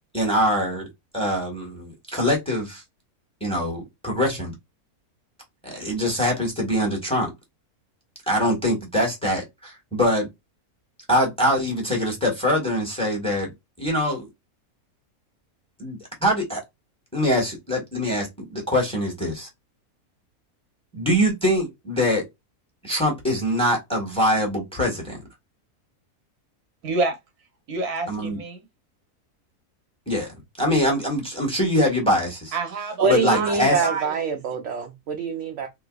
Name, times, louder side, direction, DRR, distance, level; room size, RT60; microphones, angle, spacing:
voice 1, 0.1-0.9 1.1-2.8 3.4-4.5 5.6-7.3 8.3-10.3 11.1-13.5 13.8-14.3 15.8-16.6 17.1-19.5 20.9-22.2 22.8-25.2 28.1-28.4 30.1-30.3 30.6-32.5 33.0-33.8, equal, 5° left, 1.3 m, -23 dB
voice 2, 26.8-27.2 27.7-28.6 32.5-34.2, right 3 dB, 85° right, 1.6 m, -28 dB
voice 3, 33.0-35.7, right 5 dB, 60° right, 0.9 m, -25 dB
3.8 x 2.6 x 2.4 m
omnidirectional pair, 1.6 m